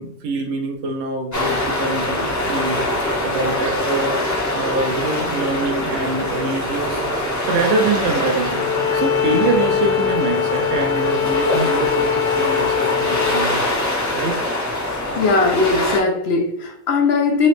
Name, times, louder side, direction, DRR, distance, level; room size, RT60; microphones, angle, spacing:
voice 1, 0.0-8.6 8.9-13.7 14.1-14.4, right 3 dB, 65° right, 3 dB, 0.8 m, -24 dB
sound 1, 1.3-16.0, left 1 dB, 15° left, 0.6 m, -24 dB
Bowed string instrument, 8.5-13.5, left 9 dB, 90° left, 1.1 m, -22 dB
voice 2, 14.9-17.5, left 4 dB, 60° left, 3 dB, 0.7 m, -19 dB
4.2 x 2.9 x 3.2 m, 0.81 s
omnidirectional pair, 1.6 m